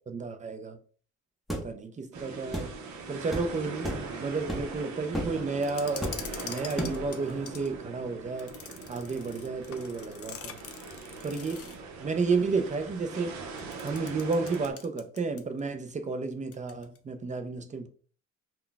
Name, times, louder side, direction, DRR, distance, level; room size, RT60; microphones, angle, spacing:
voice 1, 0.1-0.8 1.5-2.8 3.1-8.6 8.9-10.6 11.2-13.3 13.8-17.9, right 4 dB, 25° right, 0.5 m, -32 dB
sound 1, 1.5-1.7 2.5-2.7 3.3-3.5 3.8-4.1 4.5-4.7 5.1-5.4 6.0-6.4 6.8-7.1, equal, ahead, 0.8 m, -33 dB
sound 2, 2.1-14.7, right 4 dB, 70° right, 0.7 m, -41 dB
sound 3, 5.6-7.7 8.4-11.9 13.6-15.6 15.9-16.0 16.5-17.0, left 8 dB, 50° left, 0.5 m, -45 dB
2.3 x 2.2 x 3.8 m
cardioid pair, 90°, 30 cm